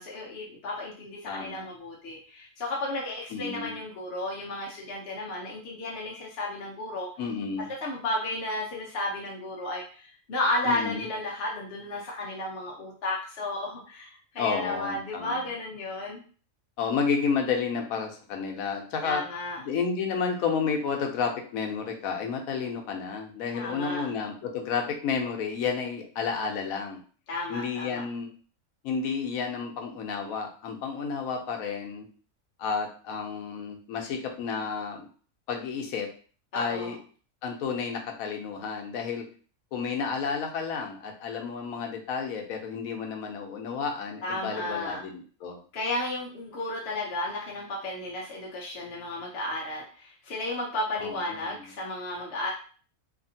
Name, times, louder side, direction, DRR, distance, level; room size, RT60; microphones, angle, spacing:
voice 1, 0.0-7.1 7.8-16.2 19.0-19.6 23.5-24.1 27.3-28.0 36.5-36.9 44.2-45.0 45.7-52.5, left 2 dB, 55° left, -3 dB, 0.8 m, -33 dB
voice 2, 1.3-1.7 3.3-3.8 7.2-7.7 10.6-11.1 14.4-15.4 16.8-19.2 19.6-27.0 27.5-28.3 28.8-32.1 32.6-35.1 35.5-36.1 36.5-37.0 37.4-39.2 39.7-45.6 51.0-51.6, left 5 dB, 80° left, 2 dB, 1.0 m, -31 dB
2.8 x 2.5 x 2.6 m, 0.41 s
omnidirectional pair, 1.4 m